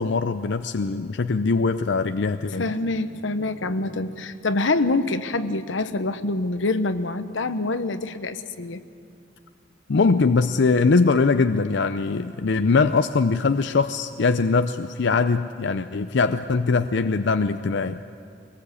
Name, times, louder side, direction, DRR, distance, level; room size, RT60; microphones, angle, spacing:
voice 1, 0.0-2.7 9.9-18.0, left 4 dB, 65° left, 9 dB, 0.6 m, -22 dB
voice 2, 2.6-8.8, left 2 dB, 90° left, 11 dB, 1.0 m, -26 dB
23.0 x 20.0 x 8.4 m, 2.4 s
head